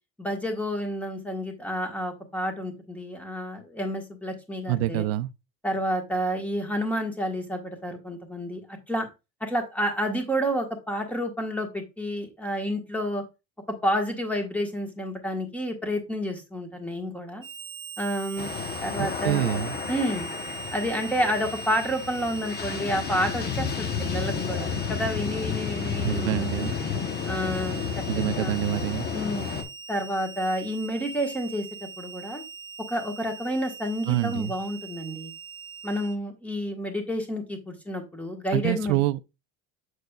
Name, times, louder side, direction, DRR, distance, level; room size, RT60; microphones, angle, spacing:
voice 1, 0.2-5.1 5.6-9.1 9.4-13.2 13.8-17.4 18.0-18.5 18.8-19.4 19.9-20.3 20.7-26.7 27.2-28.5 29.1-29.5 29.9-31.7 32.0-32.4 32.9-35.3 35.8-39.0, equal, 5° left, 1.5 m, -30 dB
voice 2, 4.7-5.3 19.0-19.8 26.0-26.7 28.1-29.1 34.1-34.5 38.5-39.2, right 15 dB, 85° right, 0.6 m, -26 dB
Harmonica, 17.4-36.2, right 5 dB, 15° right, 0.4 m, -42 dB
sound 1, 18.4-29.6, left 6 dB, 30° left, 1.0 m, -31 dB
6.6 x 6.5 x 2.3 m
cardioid pair, 155°, 30 cm